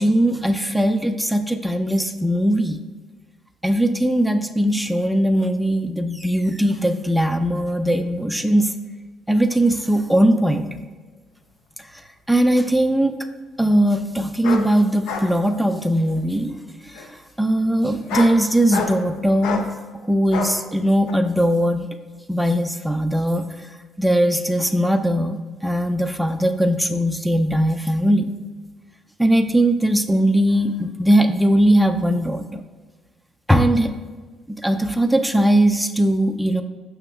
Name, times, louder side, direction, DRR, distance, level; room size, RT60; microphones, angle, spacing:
voice 1, 0.0-2.8 3.6-8.7 9.3-10.6 12.3-13.1 13.6-16.6 17.4-19.6 20.1-21.9 22.3-23.5 24.0-28.3 29.2-32.6 33.5-33.9 34.5-36.6, right 1 dB, ahead, 7 dB, 0.3 m, -19 dB
sound 1, 12.3-12.4 14.4-14.7 15.1-15.3 15.7-16.2 16.9-17.1 17.9-18.4 18.7-19.0 19.4-19.7 20.3-20.5 21.1-21.2, left 5 dB, 75° left, 0.4 m, -27 dB
5.9 x 2.8 x 2.3 m, 1.4 s
hypercardioid pair, 50°, 0 cm